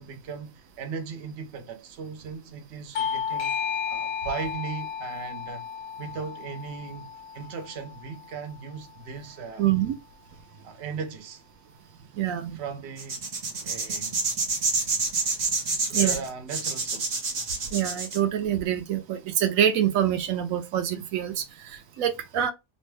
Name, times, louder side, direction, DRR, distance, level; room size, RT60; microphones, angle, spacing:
voice 1, 0.0-3.6 3.9-5.7 6.0-9.9 10.6-11.4 12.5-13.2 13.6-14.2 15.7-17.2, right 6 dB, 60° right, 0.9 m, -37 dB
Bell / Doorbell, 3.0-8.1, left 7 dB, 80° left, 1.1 m, -33 dB
voice 2, 9.6-9.9 12.1-12.6 14.5-14.7 15.9-16.2 17.7-22.5, right 10 dB, 85° right, 1.0 m, -26 dB
sound 1, 13.0-18.2, right 3 dB, 40° right, 0.7 m, -27 dB
3.0 x 2.1 x 3.1 m
omnidirectional pair, 1.4 m